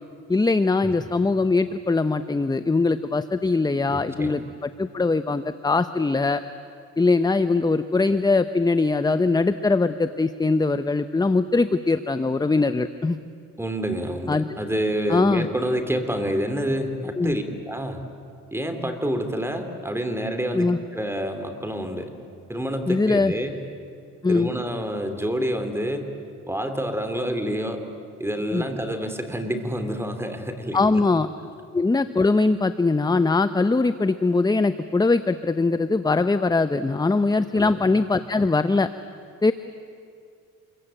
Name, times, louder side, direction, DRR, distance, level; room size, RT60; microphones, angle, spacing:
voice 1, 0.3-6.4 7.0-13.2 14.3-14.6 15.1-15.5 17.2-17.3 20.5-20.8 22.9-23.3 24.2-24.5 28.5-28.6 30.7-31.3 31.7-38.9 39.4-39.5, left 3 dB, 15° left, 11 dB, 0.7 m, -21 dB
voice 2, 3.9-4.4 13.6-18.0 18.5-22.1 22.5-23.6 24.3-26.1 26.5-27.8 28.2-31.0 37.5-37.8, equal, 10° right, 7 dB, 3.2 m, -28 dB
27.0 x 22.5 x 8.9 m, 2.4 s
cardioid pair, 90°, 30 cm